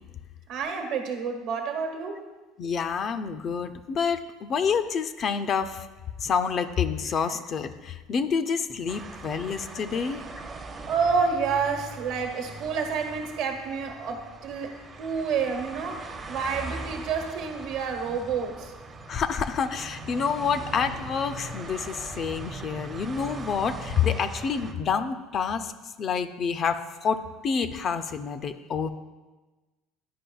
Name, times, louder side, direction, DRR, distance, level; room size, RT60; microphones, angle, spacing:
voice 1, 0.5-2.2 9.0-9.2 10.0-10.5 10.8-18.7, right 5 dB, 70° right, 3 dB, 1.0 m, -29 dB
voice 2, 2.6-5.9 6.2-10.2 19.1-25.7 26.0-28.9, left 6 dB, 45° left, 10 dB, 0.4 m, -28 dB
sound 1, 8.9-24.7, right 2 dB, 30° right, 0.5 m, -40 dB
10.0 x 4.9 x 2.3 m, 1.2 s
supercardioid pair, 100°, 0 cm